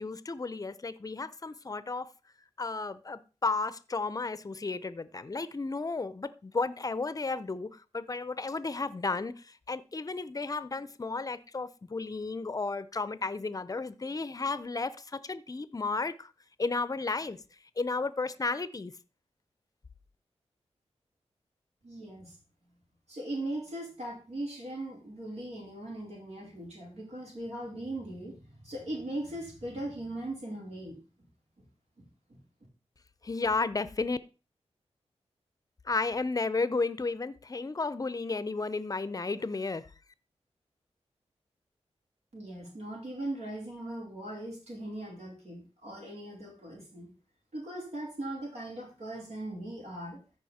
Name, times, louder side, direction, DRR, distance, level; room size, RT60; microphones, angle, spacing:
voice 1, 0.0-2.1 2.6-16.3 16.6-17.4 17.8-18.9 33.2-34.2 35.9-39.9, left 3 dB, 30° left, 0.6 m, -33 dB
voice 2, 21.8-22.4 23.1-31.0 32.0-32.4 42.3-47.1 47.5-50.2, right 1 dB, 75° right, 4.5 m, -39 dB
14.0 x 5.0 x 4.2 m
wide cardioid pair, 105°, 11 cm